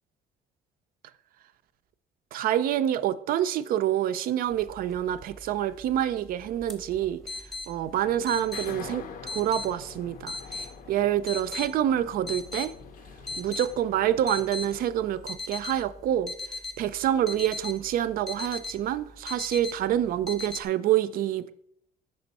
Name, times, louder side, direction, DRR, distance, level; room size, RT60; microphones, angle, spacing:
voice 1, 2.3-7.2 7.7-12.7 13.4-16.3 16.8-21.5, right 11 dB, 60° right, 0.4 m, -27 dB
sound 1, 4.5-20.6, left 3 dB, ahead, 0.8 m, -40 dB
sound 2, 8.0-14.8, left 7 dB, 55° left, 0.5 m, -46 dB
5.4 x 4.3 x 4.0 m
cardioid pair, 110°, 17 cm